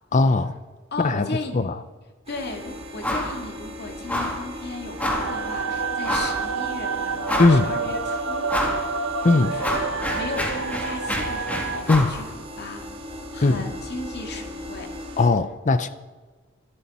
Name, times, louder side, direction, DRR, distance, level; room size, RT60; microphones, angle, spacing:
voice 1, 0.1-0.6 1.0-1.3 1.5-1.7 7.4-7.7 9.2-9.5 11.9-12.1 13.4-13.6 15.2-15.9, left 3 dB, 35° left, 12 dB, 0.6 m, -19 dB
voice 2, 0.9-1.6 2.3-12.8 13.3-14.9, left 3 dB, 50° left, 3 dB, 2.2 m, -36 dB
sound 1, 2.3-15.3, left 1 dB, 30° right, 2.6 m, -39 dB
sound 2, 3.0-3.4 3.6-3.8 4.1-4.4 5.0-5.3 6.0-6.4 6.9-7.0 7.2-7.8 8.5-8.8 9.2-12.2, left 1 dB, 10° left, 2.6 m, -27 dB
sound 3, 5.0-11.8, right 4 dB, 75° right, 1.1 m, -29 dB
26.0 x 12.0 x 4.3 m, 1.3 s
head